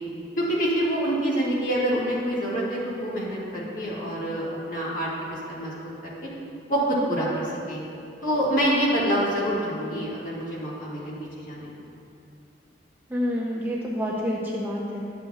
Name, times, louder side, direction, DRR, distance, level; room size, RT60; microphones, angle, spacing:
voice 1, 0.4-5.1 5.5-5.7 6.0-6.1 6.7-7.8 8.2-11.7, equal, 45° left, -6 dB, 1.8 m, -26 dB
voice 2, 13.1-15.0, equal, 10° right, -4 dB, 0.5 m, -28 dB
11.0 x 7.1 x 2.3 m, 2.6 s
head